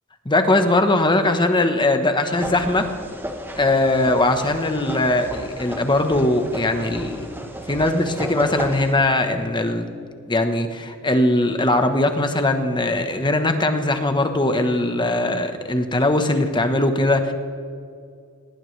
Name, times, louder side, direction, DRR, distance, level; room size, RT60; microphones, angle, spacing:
voice 1, 0.2-2.9 3.6-7.3 7.7-9.9 10.3-17.3, left 2 dB, 20° left, 7 dB, 1.1 m, -20 dB
sound 1, 2.3-8.9, right 1 dB, 10° right, 1.1 m, -33 dB
18.5 x 18.5 x 3.3 m, 2.4 s
head